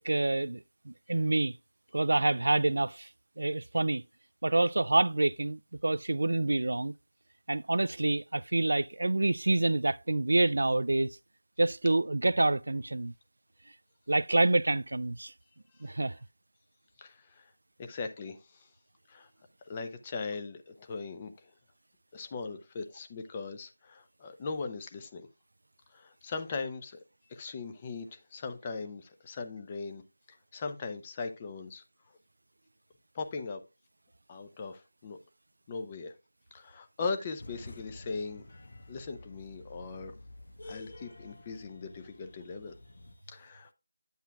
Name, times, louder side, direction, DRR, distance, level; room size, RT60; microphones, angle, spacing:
voice 1, 0.0-1.5 1.9-3.1 3.4-4.0 4.4-6.9 7.5-11.2 11.6-13.1 14.1-15.3 15.8-16.2, right 2 dB, 70° right, 0.3 m, -27 dB
voice 2, 17.0-17.5 17.8-18.7 19.1-19.3 19.7-21.3 22.1-25.2 25.9-27.0 27.3-30.0 30.3-31.8 33.1-33.6 34.3-35.2 35.7-36.1 36.5-38.4 38.9-40.1 40.6-42.7 43.3-43.7, left 4 dB, 20° left, 0.7 m, -39 dB
sound 1, 37.4-43.2, left 2 dB, 50° left, 1.1 m, -50 dB
8.9 x 8.1 x 2.3 m
figure-of-eight pair, 170°, 0 cm